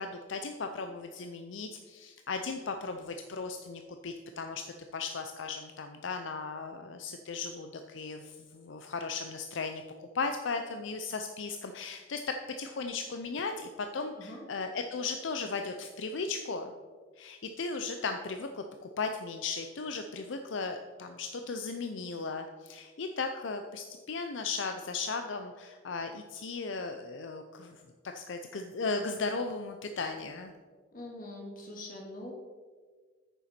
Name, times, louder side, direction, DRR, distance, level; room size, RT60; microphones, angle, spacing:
voice 1, 0.0-4.6 4.9-9.8 10.1-16.7 17.2-30.5, left 4 dB, 75° left, 6 dB, 0.5 m, -36 dB
voice 2, 30.9-32.3, left 1 dB, 45° left, 0 dB, 1.9 m, -43 dB
9.2 x 6.8 x 4.3 m, 1.5 s
head